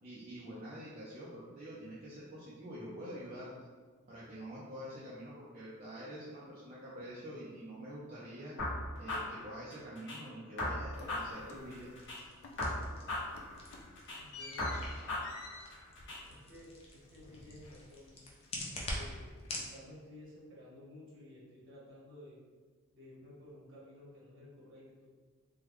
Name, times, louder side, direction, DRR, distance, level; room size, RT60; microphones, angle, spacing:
voice 1, 0.0-3.5 4.1-8.6 9.0-11.9, equal, 40° right, -8 dB, 0.6 m, -46 dB
sound 1, 8.6-10.2 10.6-12.2 12.6-14.2 14.6-16.2, left 1 dB, 55° left, 1.2 m, -38 dB
sound 2, 10.9-12.1 12.4-12.9 13.2-18.1 18.4-19.7, left 3 dB, 85° left, 0.5 m, -53 dB
sound 3, 11.7-19.7, left 1 dB, 25° left, 0.5 m, -46 dB
voice 2, 14.1-14.8 16.3-18.3 18.9-22.4 22.9-25.1, left 1 dB, 60° right, -6 dB, 1.2 m, -54 dB
3.6 x 2.2 x 3.0 m, 1.4 s
head